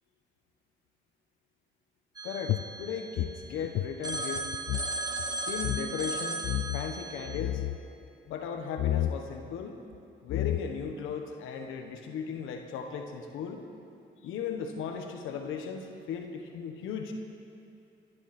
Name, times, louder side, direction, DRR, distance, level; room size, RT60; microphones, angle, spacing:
voice 1, 2.2-4.5 5.4-7.6 8.3-9.8 10.2-13.6 14.2-17.1, left 6 dB, 90° left, 4 dB, 1.3 m, -37 dB
Telephone, 2.2-3.6 4.0-7.4, right 2 dB, 20° right, 1.4 m, -36 dB
sound 1, 2.5-4.9 5.2-5.3 5.6-5.9 6.4-6.9 7.3-7.8 8.8-9.2 9.9-10.0 10.3-10.9, left 14 dB, 75° left, 0.5 m, -31 dB
27.0 x 10.5 x 4.4 m, 2.6 s
cardioid pair, 90°, 20 cm